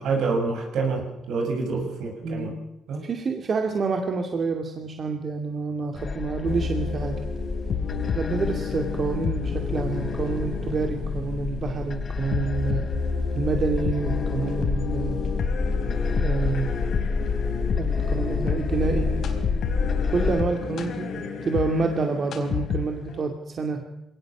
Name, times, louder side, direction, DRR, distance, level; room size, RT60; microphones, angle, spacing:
voice 1, 0.0-2.5 2.9-3.0, right 4 dB, 75° right, 2 dB, 6.9 m, -27 dB
voice 2, 2.2-2.6 3.0-7.2 8.1-12.9 13.3-15.2 16.2-16.7 17.8-19.1 20.1-23.8, right 4 dB, 45° right, 4 dB, 2.5 m, -28 dB
sound 1, 6.0-20.4, left 4 dB, 40° left, 1.3 m, -29 dB
sound 2, 6.4-23.2, left 6 dB, 70° left, 4.1 m, -30 dB
21.5 x 18.5 x 7.3 m, 0.85 s
cardioid pair, 90°, 0 cm